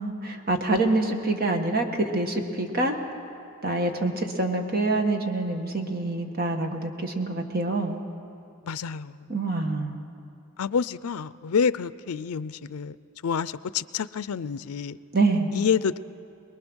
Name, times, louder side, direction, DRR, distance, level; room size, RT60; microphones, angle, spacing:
voice 1, 0.0-3.0 3.6-8.0 9.3-10.0 15.1-15.5, right 2 dB, 45° right, 4 dB, 1.6 m, -26 dB
voice 2, 8.6-9.3 10.6-13.0 13.2-15.0 15.5-16.0, left 6 dB, 85° left, 17 dB, 0.5 m, -28 dB
23.5 x 21.0 x 6.3 m, 2.6 s
head